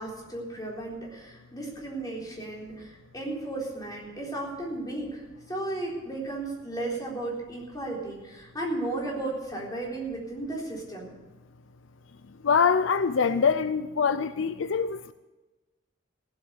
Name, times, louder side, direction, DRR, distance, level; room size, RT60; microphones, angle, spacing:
voice 1, 0.0-11.1, right 2 dB, 20° left, -2 dB, 3.9 m, -34 dB
voice 2, 12.4-15.1, left 6 dB, 80° left, 13 dB, 0.5 m, -24 dB
16.0 x 8.3 x 8.1 m, 1.1 s
head